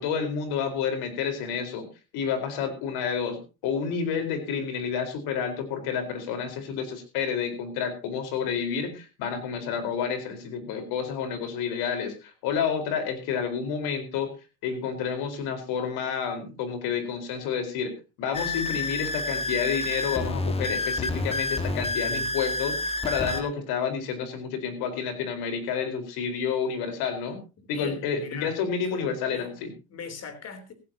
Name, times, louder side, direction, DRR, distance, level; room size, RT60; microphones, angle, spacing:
voice 1, 0.0-1.9 2.1-14.3 14.6-27.4 27.7-29.7, left 6 dB, 60° left, 4.4 m, -30 dB
sound 1, 18.3-23.4, left 2 dB, 15° left, 1.6 m, -29 dB
voice 2, 27.6-29.6 29.9-30.7, left 5 dB, 35° left, 3.5 m, -41 dB
16.5 x 15.5 x 2.9 m
supercardioid pair, 115°, 43 cm